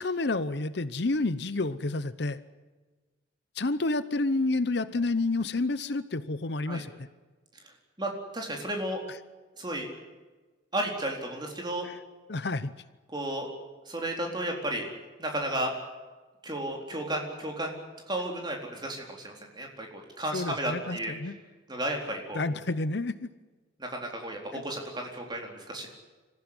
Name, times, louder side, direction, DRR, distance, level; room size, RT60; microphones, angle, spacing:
voice 1, 0.0-2.4 3.5-7.1 11.8-12.0 12.3-12.7 20.3-21.3 22.3-23.3 24.5-24.6, left 2 dB, 55° left, 14 dB, 0.8 m, -29 dB
voice 2, 7.6-9.0 9.6-9.9 10.7-11.9 13.1-13.5 13.9-14.9 15.2-15.7 16.4-17.7 18.1-21.1 21.7-22.5 23.8-25.9, right 1 dB, 20° right, 1 dB, 4.1 m, -33 dB
25.5 x 15.5 x 9.8 m, 1.3 s
head